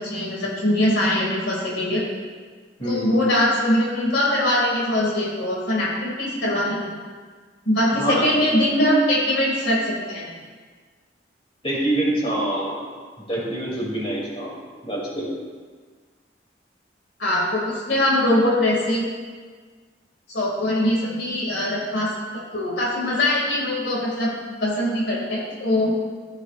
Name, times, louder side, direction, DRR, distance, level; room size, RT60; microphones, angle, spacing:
voice 1, 0.0-2.0 2.8-6.9 7.7-10.3 17.2-19.1 20.3-24.3 24.6-25.9, left 1 dB, 85° left, -4 dB, 2.3 m, -22 dB
voice 2, 2.8-3.1 7.9-8.2 11.6-12.8 13.3-14.5 14.8-15.3, right 1 dB, 30° left, -5 dB, 2.8 m, -25 dB
15.0 x 8.1 x 2.5 m, 1.5 s
head